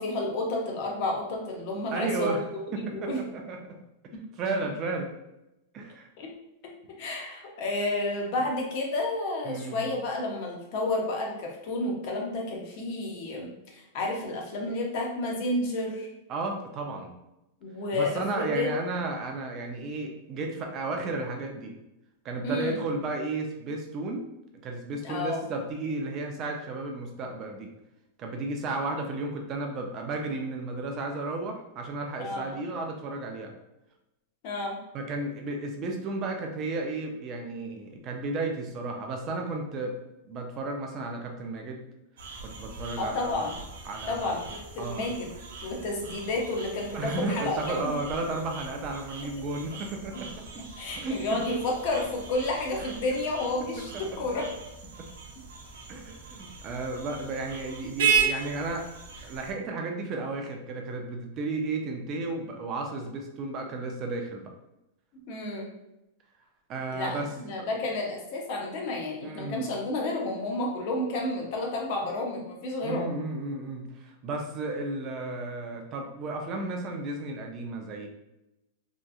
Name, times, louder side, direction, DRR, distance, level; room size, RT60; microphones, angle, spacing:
voice 1, 0.0-2.4 2.7-3.2 4.1-4.2 6.2-6.3 7.0-16.1 17.6-18.7 22.4-22.8 25.0-25.4 32.2-32.6 34.4-34.8 43.0-43.6 44.1-45.3 45.6-47.9 50.8-54.5 65.3-65.7 66.9-73.1, left 2 dB, 35° left, 0 dB, 0.5 m, -31 dB
voice 2, 1.9-2.4 2.7-3.8 4.4-5.1 5.7-6.1 9.4-9.9 16.3-17.1 17.9-21.8 22.2-24.2 24.6-27.7 28.2-33.5 34.9-40.0 40.2-41.8 42.4-43.5 43.9-44.4 44.8-45.1 46.9-50.6 50.9-51.4 52.8-52.9 53.8-54.4 55.0-55.1 55.9-58.9 59.2-64.5 66.7-67.3 67.6-67.7 69.2-69.7 72.8-78.1, right 2 dB, 25° right, 3 dB, 0.3 m, -33 dB
sound 1, 42.2-59.5, right 6 dB, 80° right, 0.5 m, -36 dB
2.7 x 2.3 x 2.3 m, 0.91 s
supercardioid pair, 180°, 0 cm